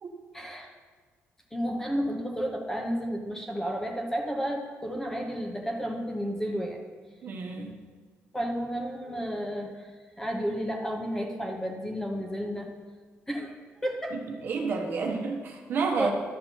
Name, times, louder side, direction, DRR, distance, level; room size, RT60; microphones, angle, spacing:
voice 1, 0.3-0.7 1.5-6.8 8.3-9.9 10.2-12.7 13.3-13.5 13.8-14.2 16.0-16.1, equal, 10° left, 2 dB, 0.9 m, -32 dB
voice 2, 7.2-7.8 14.1-16.1, right 4 dB, 50° right, 1 dB, 1.1 m, -30 dB
11.0 x 7.4 x 4.5 m, 1.5 s
wide cardioid pair, 170°, 5 cm